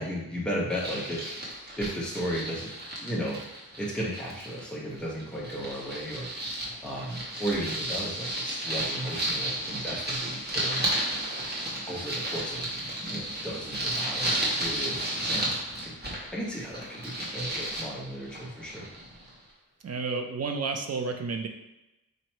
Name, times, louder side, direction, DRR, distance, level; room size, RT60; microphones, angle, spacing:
voice 1, 0.0-1.4 1.8-2.7 3.0-3.4 3.8-6.6 6.8-10.9 11.7-18.8, equal, ahead, -6 dB, 1.0 m, -35 dB
sound 1, 0.7-4.7 5.0-19.3, right 1 dB, 30° right, 1.1 m, -33 dB
voice 2, 19.8-21.5, right 4 dB, 45° right, 4 dB, 0.5 m, -31 dB
3.1 x 2.7 x 4.3 m, 0.96 s
wide cardioid pair, 80°, 35 cm